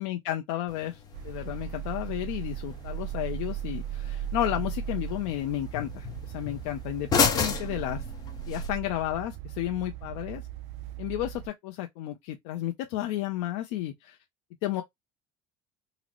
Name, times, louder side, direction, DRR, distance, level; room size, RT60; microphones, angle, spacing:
voice 1, 0.0-8.0 8.5-10.4 11.0-14.2 14.6-14.8, left 13 dB, 75° left, 0.5 m, -32 dB
sound 1, 0.7-8.7, left 5 dB, 25° left, 0.6 m, -33 dB
sound 2, 1.1-11.5, right 10 dB, 45° right, 0.4 m, -37 dB
3.8 x 2.0 x 2.9 m
cardioid pair, 165°, 16 cm